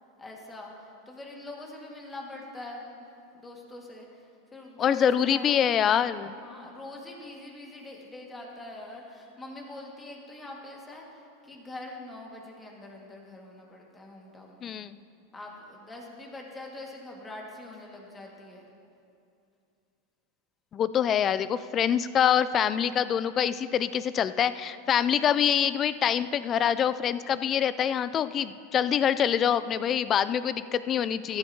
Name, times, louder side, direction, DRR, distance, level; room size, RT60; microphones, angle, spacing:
voice 1, 0.2-2.9 3.3-5.7 6.3-14.8 15.3-18.7 31.3-31.4, left 2 dB, 15° left, -1 dB, 2.0 m, -43 dB
voice 2, 4.8-6.3 14.6-15.0 20.7-31.4, left 9 dB, 35° left, 14 dB, 0.4 m, -25 dB
14.0 x 12.0 x 2.9 m, 2.5 s
hypercardioid pair, 105°, 0 cm